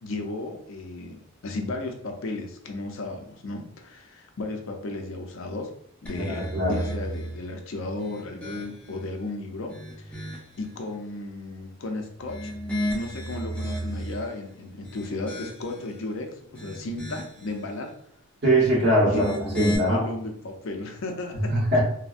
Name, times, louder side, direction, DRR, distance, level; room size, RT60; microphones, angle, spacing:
voice 1, 0.0-5.7 6.0-12.5 12.9-17.9 19.1-21.6, left 2 dB, 65° left, 3 dB, 0.4 m, -35 dB
sound 1, 6.1-7.4 7.9-9.0 9.5-10.6 12.1-14.3 14.8-15.9 16.4-17.5 19.0-19.8, equal, 5° left, 0.5 m, -34 dB
voice 2, 6.2-6.8 18.4-20.0 21.5-21.8, right 1 dB, 55° right, -7 dB, 1.5 m, -22 dB
3.3 x 2.0 x 2.4 m, 0.68 s
head